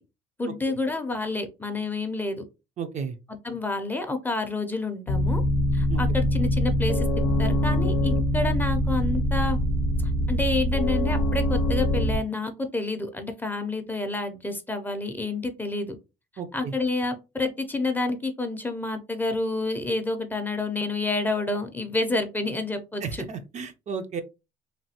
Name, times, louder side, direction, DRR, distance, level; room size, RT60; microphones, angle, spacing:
voice 1, 0.4-2.4 3.3-5.4 5.7-7.1 7.4-9.6 10.3-16.0 16.5-23.2, left 2 dB, 10° left, 6 dB, 0.5 m, -29 dB
voice 2, 2.8-3.2 5.9-6.0 16.4-16.7 23.0-24.2, right 6 dB, 45° right, 8 dB, 0.5 m, -33 dB
sound 1, 5.1-12.2, equal, 85° left, 0.5 m, -24 dB
3.2 x 2.3 x 2.7 m, 0.27 s
cardioid pair, 110°, 17 cm